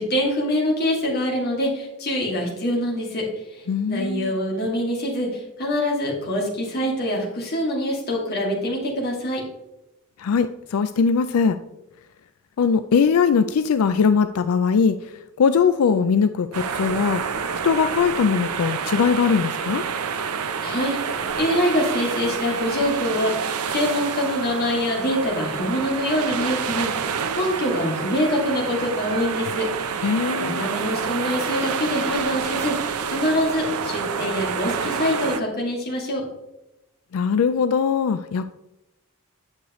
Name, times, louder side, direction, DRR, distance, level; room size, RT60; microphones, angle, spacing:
voice 1, 0.0-3.2 3.5-9.4 20.6-21.0 21.4-29.7 30.4-36.2, equal, 45° left, -2 dB, 2.2 m, -25 dB
voice 2, 3.7-4.4 10.2-11.6 12.6-17.3 17.6-19.8 30.0-30.7 37.1-38.5, left 6 dB, 70° left, 11 dB, 0.4 m, -21 dB
sound 1, 16.5-35.4, right 6 dB, 85° right, 0.6 m, -28 dB
9.6 x 6.5 x 3.0 m, 0.91 s
head